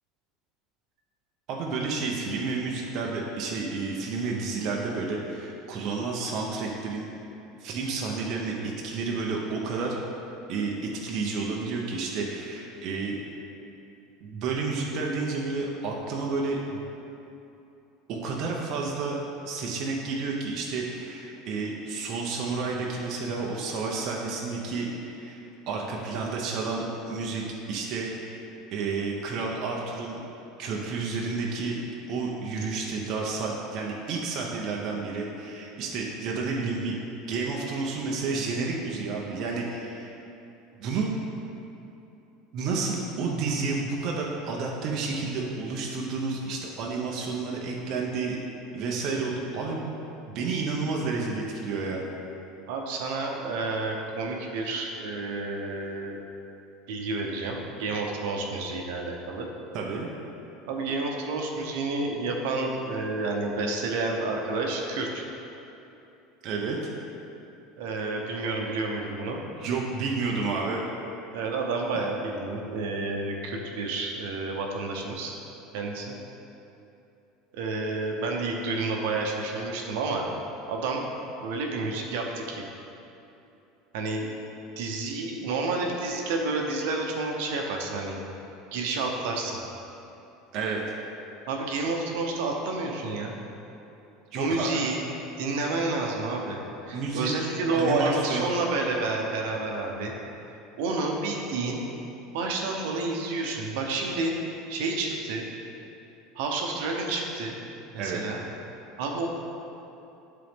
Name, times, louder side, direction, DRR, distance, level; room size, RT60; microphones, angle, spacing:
voice 1, 1.5-7.1 7.6-10.0 10.5-13.2 14.2-16.8 18.1-19.2 19.4-28.4 28.7-30.2 30.6-31.8 32.1-37.0 37.3-40.2 40.8-41.1 42.5-48.4 48.7-49.8 50.3-52.0 59.7-60.1 66.4-66.8 69.6-70.8 90.5-90.8 94.3-94.7 96.9-97.3 97.7-98.5 108.0-108.2, right 4 dB, 40° right, -2 dB, 0.7 m, -30 dB
voice 2, 52.7-56.2 56.9-59.5 60.7-65.3 67.8-69.4 71.3-75.4 75.7-76.2 77.5-80.3 80.7-81.0 81.4-82.7 83.9-84.3 84.8-88.2 88.7-89.6 91.5-93.3 94.4-95.0 95.4-96.6 96.9-100.1 100.8-101.8 102.3-104.3 104.7-105.5 106.3-107.6 107.9-108.4 109.0-109.3, right 3 dB, 70° right, 1 dB, 0.8 m, -30 dB
10.5 x 3.9 x 3.6 m, 2.9 s
cardioid pair, 175°, 0 cm